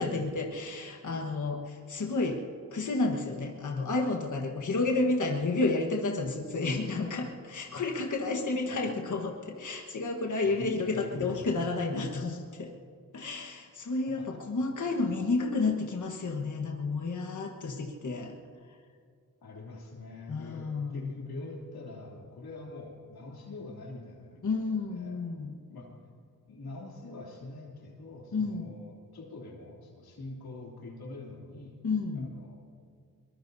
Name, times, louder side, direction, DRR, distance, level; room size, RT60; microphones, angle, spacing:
voice 1, 0.0-2.4 2.7-12.7 13.1-18.3 18.6-18.8 20.3-21.1 24.4-25.5 28.3-28.7 31.8-32.3, left 3 dB, 55° left, 1 dB, 1.4 m, -31 dB
voice 2, 8.3-8.8 10.4-11.7 14.2-14.4 14.8-14.9 19.4-24.6 24.9-25.2 25.7-25.9 26.5-31.8 32.1-32.6, left 2 dB, 90° left, -2 dB, 3.0 m, -44 dB
23.0 x 21.0 x 2.7 m, 2.3 s
cardioid pair, 65°, 36 cm